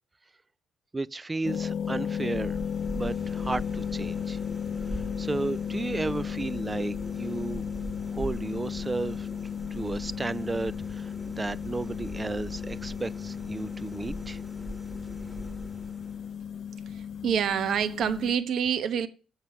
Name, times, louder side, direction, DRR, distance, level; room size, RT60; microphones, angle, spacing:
voice 1, 0.9-2.6 2.9-4.4 4.9-7.6 8.1-9.3 9.7-14.4, right 3 dB, 20° right, 0.3 m, -33 dB
sound 1, 1.4-18.3, left 8 dB, 60° left, 0.6 m, -35 dB
sound 2, 1.8-16.5, equal, 5° right, 1.6 m, -41 dB
voice 2, 16.9-19.1, right 8 dB, 70° right, 0.9 m, -27 dB
7.6 x 5.8 x 5.7 m
cardioid pair, 90°, 0 cm